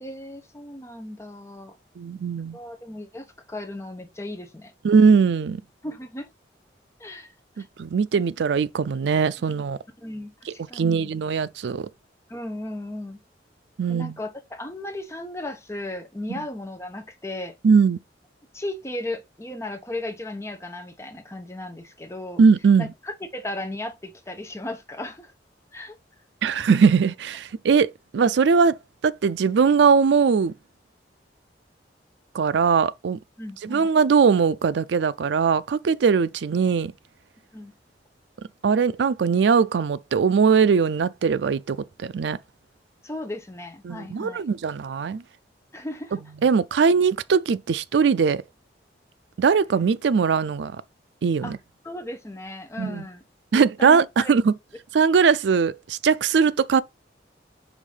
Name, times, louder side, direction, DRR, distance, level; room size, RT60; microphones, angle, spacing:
voice 1, 0.0-1.8 2.5-4.7 5.8-6.3 7.0-7.3 7.6-7.7 10.0-11.1 12.3-13.2 13.9-17.5 18.5-22.4 22.8-25.3 25.7-26.0 33.4-33.9 37.5-37.7 43.0-44.4 45.7-46.2 51.4-51.5 51.8-53.2 53.5-54.3, left 1 dB, 15° left, 0.9 m, -36 dB
voice 2, 2.0-2.6 4.8-5.6 7.8-9.8 10.7-11.9 13.8-14.2 17.6-18.0 22.4-22.9 26.4-28.8 29.0-30.5 32.3-33.2 33.6-36.9 38.6-42.4 43.8-45.2 46.4-48.4 49.4-50.8 51.2-51.6 52.8-53.0 53.5-54.5 54.9-56.8, right 5 dB, 75° right, 0.4 m, -20 dB
5.0 x 3.6 x 5.5 m
head